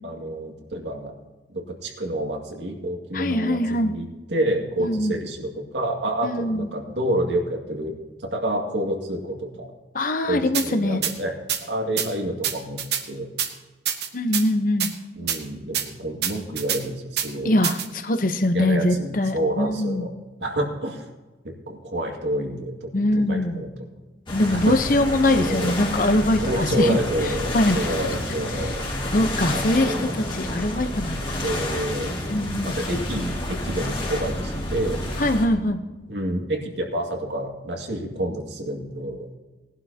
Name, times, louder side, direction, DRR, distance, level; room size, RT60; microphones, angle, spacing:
voice 1, 0.0-1.1 1.5-7.9 8.2-9.7 10.3-11.3 11.7-13.3 15.2-17.5 18.5-20.1 20.4-21.1 21.4-23.7 24.4-25.0 25.4-25.7 26.4-28.8 29.5-30.1 31.4-32.1 32.6-35.0 36.1-39.3, right 1 dB, 80° right, 1 dB, 2.2 m, -28 dB
voice 2, 3.1-3.9 4.8-5.2 6.2-6.7 9.9-11.0 14.1-14.9 17.4-20.1 22.9-23.6 24.3-27.0 27.2-27.8 28.5-28.7 29.1-31.2 32.3-32.8 35.2-35.8, left 1 dB, 50° left, 8 dB, 0.9 m, -22 dB
sound 1, 10.5-10.7 11.0-11.1 11.5-11.6 12.0-12.1 12.4-13.0 13.4-13.5 13.9-14.4 14.8-14.9 15.3-15.4 15.7-15.9 16.2-16.8 17.2-17.3 17.6-17.9, right 9 dB, 65° right, 1.1 m, -25 dB
sound 2, 24.3-35.5, left 1 dB, 30° left, 2.1 m, -29 dB
19.5 x 11.5 x 2.9 m, 1.2 s
head